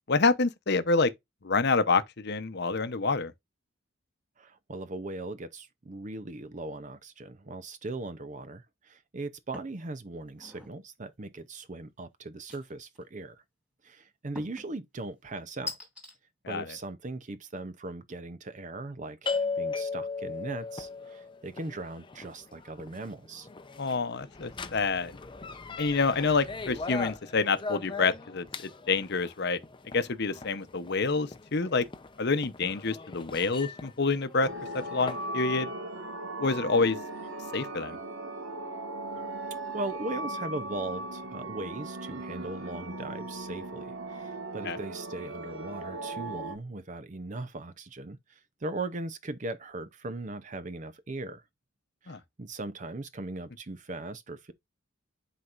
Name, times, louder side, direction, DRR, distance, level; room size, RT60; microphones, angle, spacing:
voice 1, 0.1-1.1 1.4-3.3 16.4-16.7 23.8-25.1 25.8-29.6 29.9-31.8 32.2-34.5 34.7-35.7 36.4-37.0 37.5-38.0 44.7-44.8 52.1-52.2, left 4 dB, 55° left, 0.8 m, -27 dB
voice 2, 4.4-13.4 13.8-15.8 16.5-23.5 39.2-39.3 39.7-51.4 52.0-54.5, right 2 dB, 40° right, 0.6 m, -39 dB
sound 1, 9.5-9.8 10.3-10.8 12.5-13.0 14.4-14.7 15.7-16.1, left 3 dB, 5° right, 2.4 m, -42 dB
sound 2, 19.2-35.3, left 4 dB, 25° left, 0.6 m, -38 dB
sound 3, 34.4-46.6, right 2 dB, 75° right, 1.6 m, -38 dB
11.0 x 4.3 x 2.5 m
head